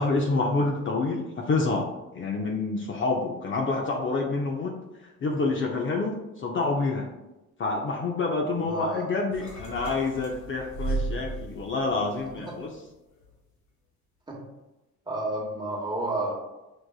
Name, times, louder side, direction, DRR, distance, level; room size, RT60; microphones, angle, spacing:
voice 1, 0.0-1.9 2.1-4.8 5.2-7.1 7.6-12.7, left 3 dB, 40° left, 0 dB, 0.6 m, -27 dB
voice 2, 8.6-9.1 12.5-12.6 14.3-14.4 15.1-16.3, right 1 dB, 15° right, -3 dB, 1.2 m, -31 dB
sound 1, 9.3-12.8 13.1-13.4, right 3 dB, 70° left, 1.3 m, -35 dB
6.2 x 2.5 x 2.3 m, 1.0 s
cardioid pair, 90°, 30 cm